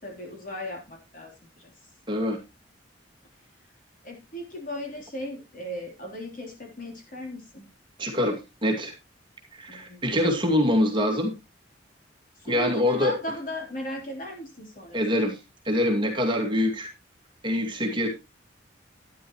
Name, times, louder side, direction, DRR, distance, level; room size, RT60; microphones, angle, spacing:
voice 1, 0.0-1.7 4.0-7.6 9.7-10.0 12.5-15.0 17.6-18.1, left 1 dB, 45° left, 2 dB, 3.5 m, -37 dB
voice 2, 2.1-2.4 8.0-8.9 9.5-11.3 12.4-13.1 14.9-15.4 15.7-16.9 17.4-18.1, left 1 dB, 25° right, 2 dB, 2.3 m, -24 dB
12.0 x 10.5 x 3.0 m, 0.25 s
head